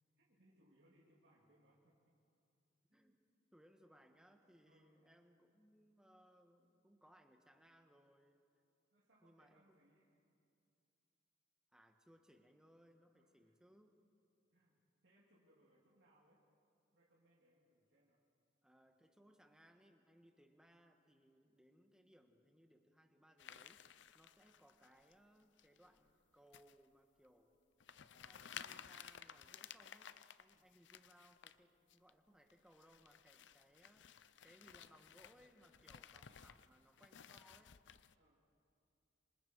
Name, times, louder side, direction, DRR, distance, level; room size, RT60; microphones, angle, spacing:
voice 1, 0.2-2.2 2.9-3.0 4.7-5.0 8.9-10.4 13.1-13.5 14.5-16.4 16.9-18.2 30.5-30.7 36.4-36.6 38.1-38.5, right 1 dB, 75° right, -6 dB, 3.1 m, -73 dB
voice 2, 3.5-8.4 9.2-10.0 11.7-14.0 18.6-27.5 28.1-34.1 34.4-37.8, equal, 5° right, 4 dB, 1.4 m, -68 dB
sound 1, 23.4-25.1 25.6-26.0 26.5-26.8 27.2-27.3 27.8-31.6 31.9-32.1 32.5-38.1, left 8 dB, 75° left, 0.6 m, -56 dB
27.0 x 25.5 x 4.7 m, 2.6 s
head